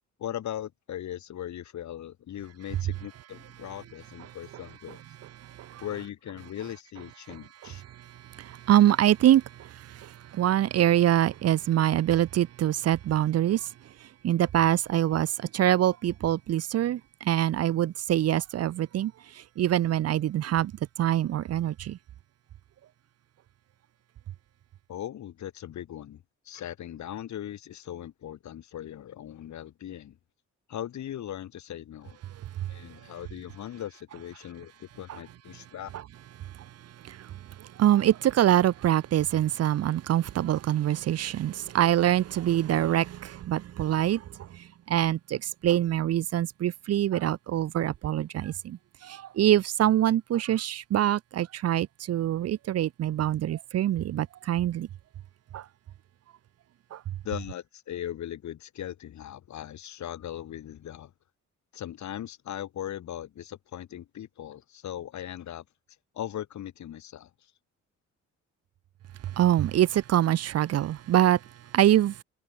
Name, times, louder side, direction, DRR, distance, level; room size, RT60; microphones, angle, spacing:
voice 1, 0.2-5.0 5.8-7.8 24.9-30.2 30.7-32.2 32.7-35.9 57.2-61.1 61.7-65.6 66.1-67.3, left 11 dB, 70° left, 3.3 m, -39 dB
voice 2, 8.4-9.4 10.0-13.6 14.2-17.0 17.2-19.1 19.6-20.7 21.0-22.0 37.1-37.2 37.8-44.2 44.9-48.8 49.0-54.9 55.5-55.6 56.9-57.0 69.4-71.4 71.7-72.1, right 12 dB, 55° right, 0.6 m, -24 dB
cardioid pair, 90°, 30 cm